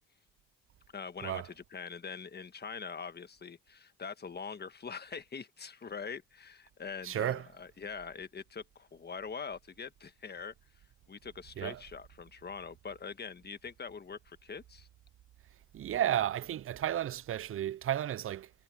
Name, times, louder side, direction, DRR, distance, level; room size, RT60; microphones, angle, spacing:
voice 1, 0.9-10.5 11.1-14.9, left 5 dB, 35° left, 1.5 m, -43 dB
voice 2, 7.0-7.4 11.6-11.8 15.7-18.5, right 11 dB, 45° right, 0.5 m, -33 dB
cardioid pair, 90°, 30 cm